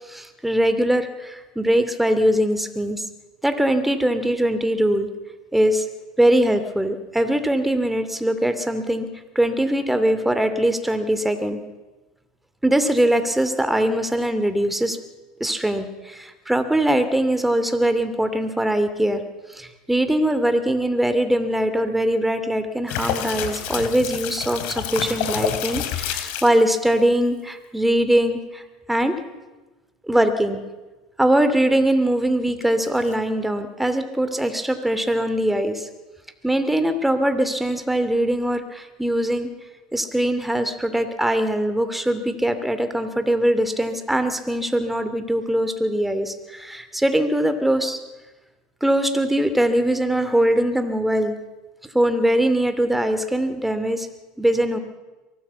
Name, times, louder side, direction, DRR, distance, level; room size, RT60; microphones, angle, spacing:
voice 1, 0.1-3.0 3.4-5.1 5.5-5.9 6.2-9.1 9.3-11.6 12.6-15.0 15.4-19.2 19.5-28.6 28.9-29.1 30.1-30.6 31.2-35.9 36.4-39.5 39.9-48.0 48.8-51.3 51.9-54.1 54.4-54.8, right 1 dB, 5° right, 9 dB, 2.7 m, -21 dB
sound 1, 22.9-26.6 32.6-33.2, left 9 dB, 60° left, 3.0 m, -28 dB
23.5 x 18.0 x 7.0 m, 1.2 s
hypercardioid pair, 85°, 3 cm